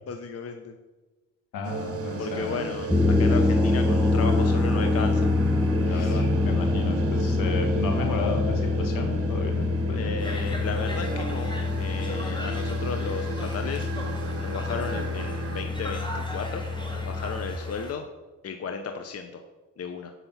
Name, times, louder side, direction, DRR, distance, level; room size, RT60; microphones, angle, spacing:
voice 1, 0.1-0.8 2.2-5.3 5.9-6.2 9.9-16.6 16.9-18.0 18.4-19.4 19.8-20.1, left 5 dB, 45° left, 6 dB, 0.9 m, -34 dB
voice 2, 1.5-2.7 5.8-10.6, left 3 dB, 75° left, 4 dB, 1.8 m, -33 dB
sound 1, 1.6-15.6, right 5 dB, 45° right, 1.3 m, -35 dB
sound 2, 2.8-17.6, left 3 dB, ahead, 0.6 m, -26 dB
Conversation, 10.2-17.9, equal, 15° left, 2.5 m, -39 dB
8.1 x 5.7 x 5.6 m, 1.2 s
cardioid pair, 75°, 33 cm